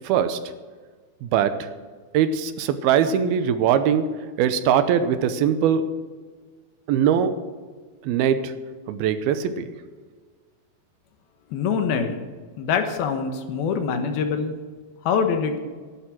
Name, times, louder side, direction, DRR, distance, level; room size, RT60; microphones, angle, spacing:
voice 1, 0.1-0.4 1.2-1.7 2.1-4.0 4.4-5.8 6.9-7.3 8.1-8.5 8.9-9.7, right 8 dB, 80° right, 11 dB, 2.7 m, -21 dB
voice 2, 11.5-12.2 12.6-14.5 15.0-15.6, left 6 dB, 75° left, 7 dB, 3.1 m, -24 dB
13.5 x 11.5 x 6.2 m, 1.5 s
omnidirectional pair, 4.5 m